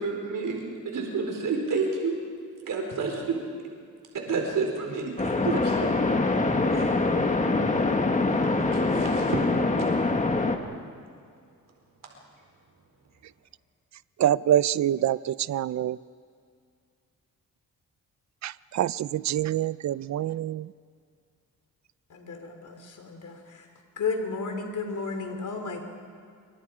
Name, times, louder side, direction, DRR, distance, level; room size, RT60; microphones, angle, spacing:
voice 1, 0.0-2.1 2.6-3.4 4.2-5.9 6.7-6.9 8.9-9.4, right 4 dB, 75° right, 4.4 m, -29 dB
sound 1, 5.2-10.6, left 3 dB, 25° left, 1.8 m, -24 dB
voice 2, 14.2-15.2 15.5-16.0 18.4-20.6, right 11 dB, 60° right, 0.5 m, -25 dB
voice 3, 22.1-23.7 24.0-25.8, left 4 dB, 65° left, 3.6 m, -33 dB
28.5 x 24.5 x 5.0 m
cardioid pair, 105°, 32 cm